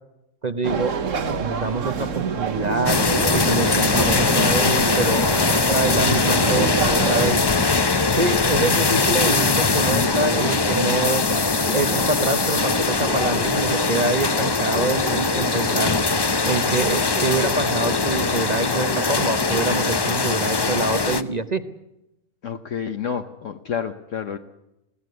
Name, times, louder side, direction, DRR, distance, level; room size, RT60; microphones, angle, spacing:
voice 1, 0.4-3.0 3.3-7.4 8.1-11.2 11.7-16.0 16.5-21.6, right 3 dB, 35° right, 9 dB, 0.9 m, -26 dB
sound 1, 0.6-7.3, right 6 dB, 60° right, 1.5 m, -27 dB
sound 2, 2.9-21.2, left 3 dB, 25° left, 0.5 m, -21 dB
Bark, 9.2-9.5 10.4-10.6 11.6-12.4 13.0-13.5 14.7-15.9 17.1-18.0 18.9-19.7, equal, ahead, 1.7 m, -36 dB
voice 2, 22.4-24.4, left 7 dB, 60° left, 6 dB, 1.3 m, -29 dB
21.5 x 16.0 x 9.5 m, 0.91 s
omnidirectional pair, 1.5 m